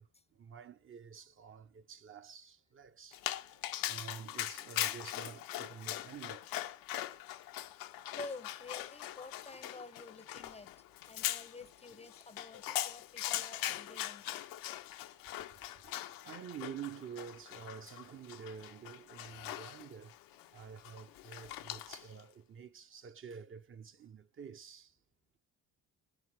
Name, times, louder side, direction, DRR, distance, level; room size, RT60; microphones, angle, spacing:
voice 1, 0.4-6.5 6.9-7.0 15.8-20.2 20.5-24.9, right 7 dB, 40° right, 0.6 m, -49 dB
Dog, 3.1-22.2, left 13 dB, 85° left, 0.6 m, -41 dB
voice 2, 8.1-14.4, left 3 dB, 20° left, 0.5 m, -50 dB
18.5 x 9.6 x 3.3 m
cardioid pair, 85°, 34 cm